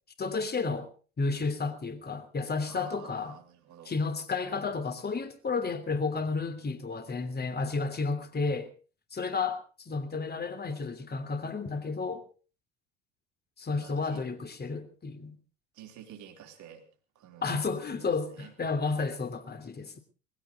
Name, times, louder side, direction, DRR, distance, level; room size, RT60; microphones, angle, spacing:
voice 1, 0.2-0.9 1.2-3.4 3.9-8.7 9.1-12.2 13.6-15.4 17.4-20.0, left 4 dB, 25° left, 3.1 m, -32 dB
voice 2, 2.7-3.9 13.8-14.2 15.7-16.8 17.2-18.5, right 9 dB, 55° right, 3.9 m, -50 dB
19.5 x 16.0 x 4.0 m
hypercardioid pair, 65°, 36 cm